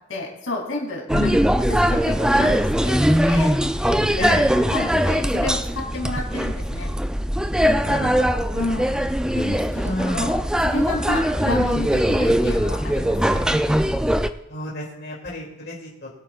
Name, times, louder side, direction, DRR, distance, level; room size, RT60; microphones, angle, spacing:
voice 1, 0.1-1.5 1.8-4.3 4.5-6.9 8.5-13.6, left 2 dB, 85° left, -2 dB, 3.1 m, -31 dB
voice 2, 1.1-1.4 4.2-4.5 7.8-8.4 9.8-10.3 14.5-16.1, left 1 dB, 55° left, -3 dB, 2.6 m, -29 dB
sound 1, 1.1-14.3, equal, 5° right, 0.4 m, -21 dB
21.5 x 8.3 x 2.4 m, 0.90 s
head